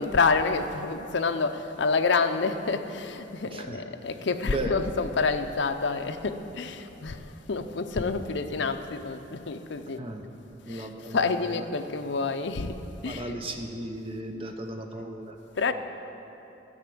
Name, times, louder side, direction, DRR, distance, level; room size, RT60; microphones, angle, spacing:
voice 1, 0.0-10.0 10.7-12.8 13.0-13.3 14.3-14.4 15.5-15.7, left 4 dB, 60° left, 8 dB, 0.5 m, -28 dB
voice 2, 3.5-3.8 4.4-4.7 10.0-10.2 10.7-11.3 13.1-15.4, right 1 dB, 30° right, 4 dB, 0.7 m, -35 dB
12.0 x 5.8 x 7.7 m, 2.9 s
head